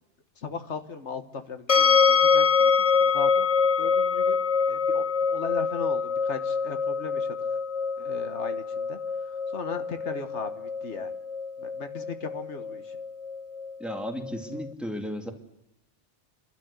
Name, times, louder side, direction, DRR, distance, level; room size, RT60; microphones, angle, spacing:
voice 1, 0.4-2.7 3.0-3.5 3.8-4.4 4.7-5.0 5.3-7.3 8.0-9.0 9.3-11.1 11.6-12.9, left 5 dB, 80° left, 8 dB, 1.6 m, -37 dB
sound 1, 1.7-14.7, left 5 dB, 35° left, 0.8 m, -25 dB
voice 2, 13.8-15.3, equal, ahead, 4 dB, 2.4 m, -34 dB
29.5 x 13.0 x 8.2 m, 0.89 s
omnidirectional pair, 1.2 m